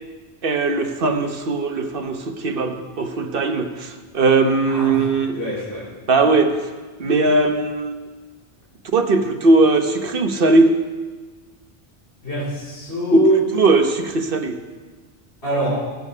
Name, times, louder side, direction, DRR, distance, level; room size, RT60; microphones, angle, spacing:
voice 1, 0.4-5.4 6.1-6.6 7.0-7.9 8.9-10.8 13.5-14.6, right 3 dB, 55° right, 6 dB, 1.1 m, -19 dB
voice 2, 4.7-5.0 5.3-5.9 12.2-13.4 15.4-15.9, right 1 dB, 70° left, -7 dB, 4.7 m, -23 dB
18.5 x 7.1 x 5.4 m, 1.4 s
omnidirectional pair, 1.1 m